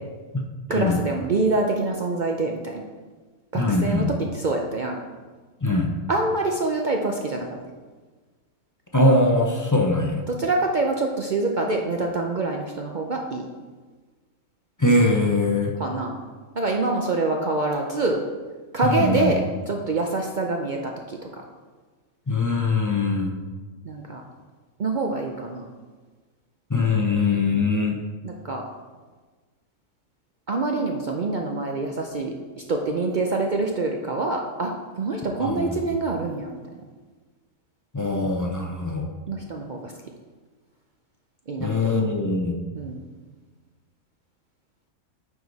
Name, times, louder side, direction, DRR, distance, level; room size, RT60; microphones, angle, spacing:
voice 1, 0.7-2.8 3.5-5.0 6.1-7.5 10.3-13.5 15.8-16.2 16.5-18.2 18.7-21.2 23.9-24.2 24.8-25.7 27.3-27.7 28.2-28.6 30.5-32.3 32.7-36.6 39.3-39.9 41.5-41.9 42.7-43.0, right 3 dB, 55° right, 1 dB, 0.5 m, -25 dB
voice 2, 3.5-4.1 5.6-5.9 8.9-10.2 14.8-15.7 18.8-19.3 22.3-23.3 26.7-28.0 35.4-35.8 37.9-39.0 41.6-42.6, left 2 dB, 25° left, 0 dB, 0.4 m, -22 dB
9.4 x 4.9 x 4.0 m, 1.4 s
omnidirectional pair, 1.5 m